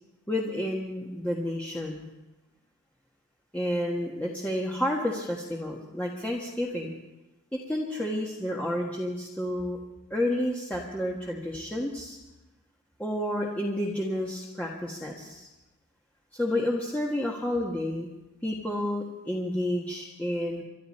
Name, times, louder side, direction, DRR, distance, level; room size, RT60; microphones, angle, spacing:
voice 1, 0.3-2.1 3.5-6.9 7.7-9.8 10.1-12.2 13.0-15.5 16.3-18.1 18.4-20.6, left 1 dB, 5° left, -3 dB, 1.4 m, -30 dB
26.0 x 12.0 x 4.3 m, 1.0 s
head